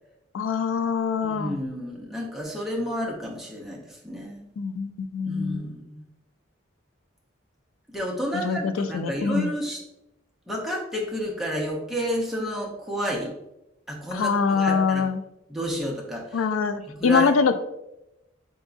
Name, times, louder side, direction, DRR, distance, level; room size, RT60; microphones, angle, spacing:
voice 1, 0.3-1.6 4.6-5.7 8.4-9.5 14.1-15.2 16.3-17.6, left 5 dB, 85° left, 10 dB, 0.4 m, -24 dB
voice 2, 1.2-4.5 5.2-6.0 7.9-9.8 10.5-13.3 13.9-15.0 15.5-16.5 16.8-17.3, equal, ahead, -3 dB, 0.7 m, -31 dB
3.9 x 3.5 x 2.5 m, 0.89 s
head